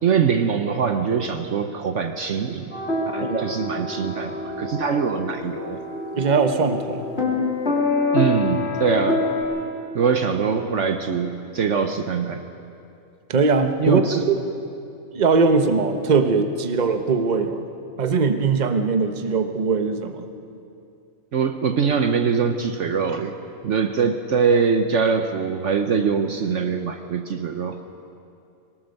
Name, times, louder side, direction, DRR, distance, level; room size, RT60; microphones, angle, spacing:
voice 1, 0.0-2.7 3.1-5.8 8.1-9.2 9.9-12.4 13.8-14.2 21.3-23.3 23.6-27.8, right 6 dB, 60° right, 7 dB, 1.1 m, -23 dB
sound 1, 2.7-9.4, left 3 dB, 45° left, 3.2 m, -26 dB
voice 2, 6.2-7.0 13.3-14.0 14.3-14.4 15.1-17.6 18.0-20.3, right 4 dB, 35° right, 7 dB, 1.0 m, -20 dB
23.0 x 18.5 x 6.5 m, 2.6 s
omnidirectional pair, 1.5 m